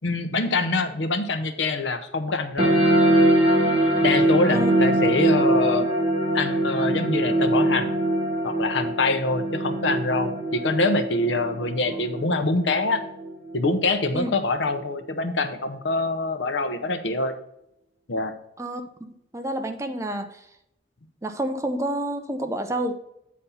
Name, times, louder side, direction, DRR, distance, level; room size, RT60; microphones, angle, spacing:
voice 1, 0.0-2.8 4.0-5.9 6.3-7.9 8.4-13.0 13.5-17.3 18.1-18.3, left 2 dB, 80° left, 9 dB, 0.8 m, -25 dB
sound 1, 2.6-13.6, right 1 dB, 30° right, 2.0 m, -22 dB
voice 2, 19.3-20.3 21.2-22.9, right 1 dB, 15° right, 7 dB, 0.6 m, -28 dB
8.6 x 4.2 x 5.6 m, 0.80 s
head